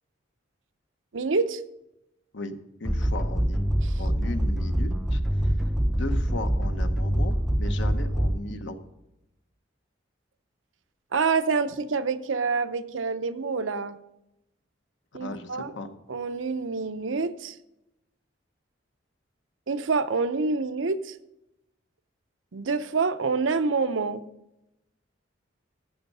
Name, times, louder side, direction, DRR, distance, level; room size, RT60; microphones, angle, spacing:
voice 1, 1.1-1.6 3.9-4.0 11.1-14.0 15.1-15.7 16.1-17.6 19.7-21.1 22.5-24.2, right 4 dB, 80° right, 11 dB, 0.7 m, -27 dB
voice 2, 2.3-3.7 4.0-5.5 5.9-8.8 15.2-15.9, left 2 dB, 65° left, 8 dB, 1.0 m, -37 dB
sound 1, 2.8-8.7, equal, ahead, 0.5 m, -25 dB
12.0 x 8.0 x 5.4 m, 0.88 s
head